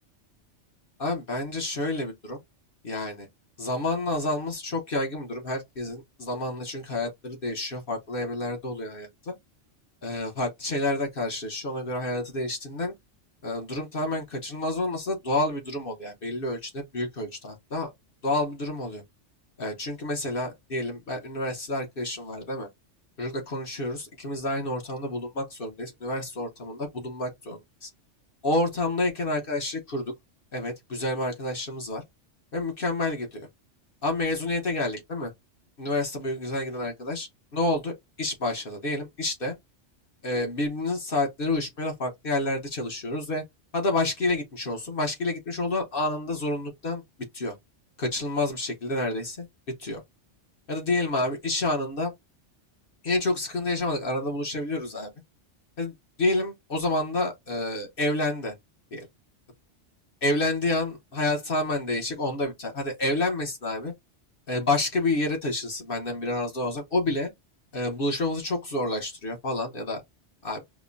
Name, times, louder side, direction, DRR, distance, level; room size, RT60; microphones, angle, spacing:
voice 1, 1.0-2.4 2.8-3.3 3.6-9.3 10.0-12.9 13.4-17.9 18.2-19.0 19.6-22.7 23.2-27.9 28.4-30.1 30.5-32.0 32.5-33.5 34.0-35.3 35.8-39.5 40.2-43.4 43.7-47.0 47.3-47.5 48.0-49.5 49.8-50.0 50.7-52.1 53.0-55.1 55.8-55.9 56.2-58.5 58.9-59.1 60.2-63.9 64.5-67.3 67.7-70.0 70.4-70.6, left 2 dB, 50° left, 1.1 m, -29 dB
5.1 x 2.1 x 2.5 m
omnidirectional pair, 1.2 m